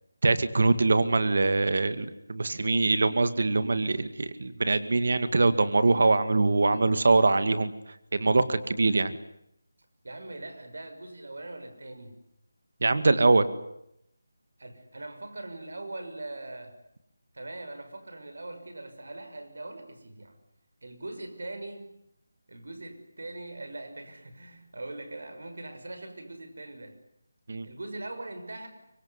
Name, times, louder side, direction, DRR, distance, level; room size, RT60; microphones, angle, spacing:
voice 1, 0.2-7.7 8.1-9.1 12.8-13.5 27.5-27.7, right 3 dB, 55° right, 12 dB, 2.2 m, -23 dB
voice 2, 10.0-12.2 14.6-16.7 17.3-20.4 20.8-21.9 22.5-26.9 27.6-28.7, right 2 dB, 75° right, 7 dB, 6.2 m, -41 dB
25.0 x 23.5 x 9.8 m, 0.77 s
figure-of-eight pair, 175°, 0 cm